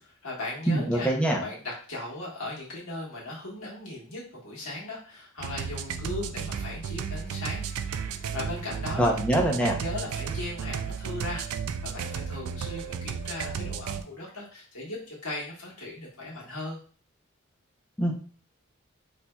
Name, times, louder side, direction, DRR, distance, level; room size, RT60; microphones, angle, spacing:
voice 1, 0.0-7.6 7.9-9.2 9.6-11.4 11.8-16.8, left 2 dB, 90° left, -3 dB, 1.4 m, -38 dB
voice 2, 0.7-1.4 9.0-9.8 18.0-18.1, right 1 dB, 5° left, 0 dB, 0.6 m, -24 dB
sound 1, 5.4-14.0, right 7 dB, 85° right, 0.3 m, -33 dB
4.4 x 2.7 x 2.2 m, 0.42 s
head